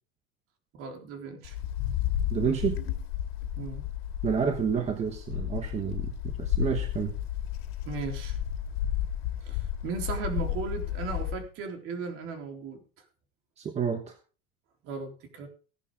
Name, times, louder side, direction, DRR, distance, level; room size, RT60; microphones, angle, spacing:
voice 1, 0.7-1.6 3.6-3.9 7.9-8.4 9.4-12.8 14.8-15.5, right 5 dB, 45° right, 4 dB, 3.7 m, -36 dB
Wind, 1.4-11.5, left 11 dB, 75° left, 2.3 m, -32 dB
voice 2, 2.3-2.8 4.2-7.2 13.6-14.2, right 7 dB, 20° right, 6 dB, 1.3 m, -29 dB
16.5 x 11.0 x 3.7 m, 0.37 s
supercardioid pair, 150°, 31 cm